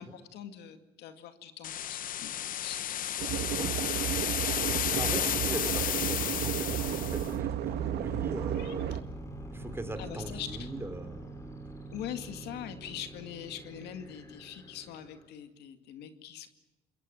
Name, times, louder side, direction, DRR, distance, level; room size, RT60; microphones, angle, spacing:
voice 1, 0.0-3.2 4.6-4.8 8.6-9.0 10.0-10.7 11.9-16.5, left 10 dB, 80° left, 8 dB, 2.2 m, -43 dB
sound 1, 1.6-7.3, left 11 dB, 55° left, 0.9 m, -32 dB
sound 2, 3.2-9.0, right 12 dB, 75° right, 1.1 m, -33 dB
voice 2, 4.9-9.2 9.5-11.2, right 2 dB, 15° right, 8 dB, 3.6 m, -40 dB
sound 3, 6.6-15.3, right 1 dB, 20° left, 4.9 m, -44 dB
26.5 x 21.5 x 7.7 m, 1.1 s
cardioid pair, 110°, 17 cm